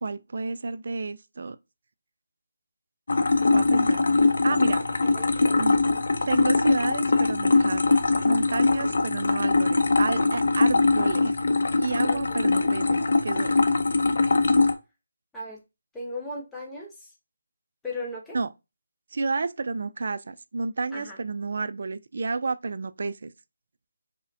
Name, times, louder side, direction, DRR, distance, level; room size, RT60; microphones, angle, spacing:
voice 1, 0.0-1.6 3.5-4.0 4.4-4.8 5.6-5.8 6.3-8.0 8.2-11.3 11.8-13.6 18.3-18.5 19.1-23.3, right 4 dB, 50° right, 0.3 m, -30 dB
sound 1, 3.1-14.7, left 3 dB, 60° left, 0.6 m, -22 dB
voice 2, 12.1-12.5 15.3-15.6 15.9-17.1 17.8-18.4 20.9-21.2, left 2 dB, 5° left, 0.6 m, -37 dB
4.9 x 2.1 x 2.6 m
figure-of-eight pair, 170°, 0 cm